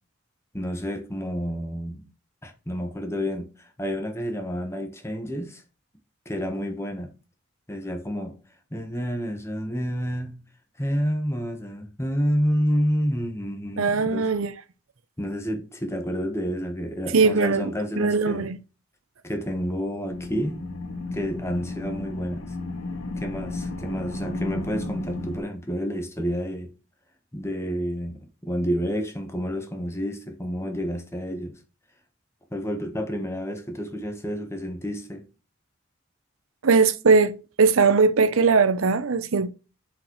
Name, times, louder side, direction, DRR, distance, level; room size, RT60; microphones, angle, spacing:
voice 1, 0.5-2.0 2.4-5.6 6.2-7.1 7.7-8.4 8.7-10.4 10.8-14.3 15.2-18.5 19.2-20.6 21.1-22.4 23.2-26.7 27.3-31.5 32.5-35.2, equal, 15° left, 1.2 m, -29 dB
voice 2, 13.8-14.5 17.1-18.6 36.6-39.5, right 4 dB, 80° right, 0.7 m, -20 dB
sound 1, 20.1-25.4, left 2 dB, 85° left, 1.8 m, -33 dB
7.3 x 5.1 x 3.1 m
head